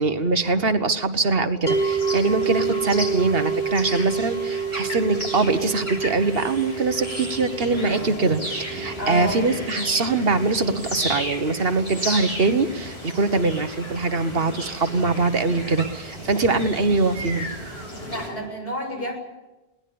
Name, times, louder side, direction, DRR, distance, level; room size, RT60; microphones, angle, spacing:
voice 1, 0.0-17.5, right 3 dB, 70° right, 10 dB, 1.6 m, -23 dB
sound 1, 1.7-18.3, left 1 dB, 80° left, 7.0 m, -34 dB
sound 2, 1.7-12.8, right 6 dB, 45° left, 2.2 m, -30 dB
voice 2, 9.0-9.5 18.1-19.1, right 1 dB, 65° left, 2 dB, 7.0 m, -29 dB
22.0 x 19.0 x 8.8 m, 1.0 s
omnidirectional pair, 1.0 m